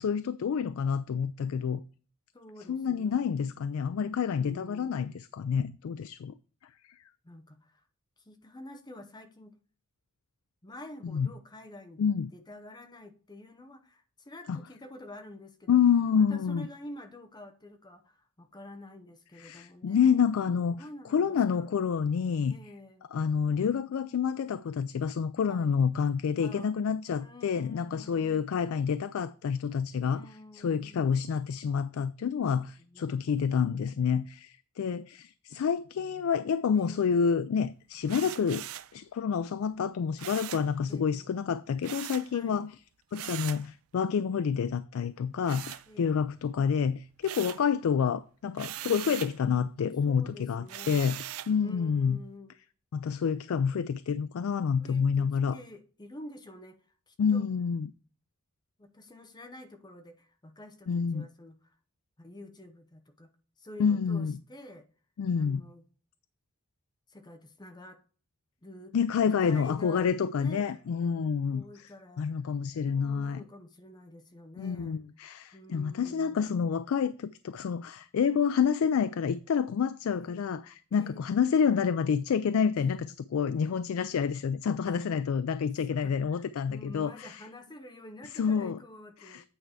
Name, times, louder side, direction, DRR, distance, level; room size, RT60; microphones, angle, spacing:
voice 1, 0.0-1.8 2.7-6.3 11.0-11.3 12.0-12.3 14.5-14.6 15.7-16.7 19.4-20.8 21.1-22.6 23.1-30.3 30.5-38.6 38.9-42.7 43.1-52.2 52.9-55.6 57.2-57.9 60.9-61.3 63.8-64.3 65.2-65.6 68.9-71.6 72.2-73.4 74.6-87.4 88.3-88.8 89.2-89.5, left 6 dB, 70° left, 0.3 m, -28 dB
voice 2, 2.3-3.2 4.3-5.2 7.2-7.8 8.2-9.5 10.6-12.0 12.3-15.8 16.1-20.1 20.7-21.7 22.5-23.0 25.5-25.8 26.4-26.7 27.2-28.5 30.0-31.0 32.8-33.2 36.7-37.0 38.3-38.6 40.9-41.3 42.3-42.7 45.9-46.2 50.0-51.1 51.6-52.5 54.8-56.8 57.1-57.5 58.8-61.8 62.2-63.3 63.6-64.9 65.3-65.8 67.1-68.0 68.6-69.0 69.4-70.1 70.4-70.8 71.5-72.4 72.8-75.0 75.5-76.6 80.1-80.4 80.9-81.3 82.8-83.1 84.9-85.0 85.9-89.5, left 1 dB, 20° left, 0.7 m, -49 dB
sound 1, 38.1-39.0 40.2-40.7 41.8-42.3 43.1-43.7 45.4-46.3 46.7-47.7 48.6-49.4 50.7-51.6, right 13 dB, 70° right, 0.5 m, -40 dB
8.9 x 4.5 x 4.8 m
head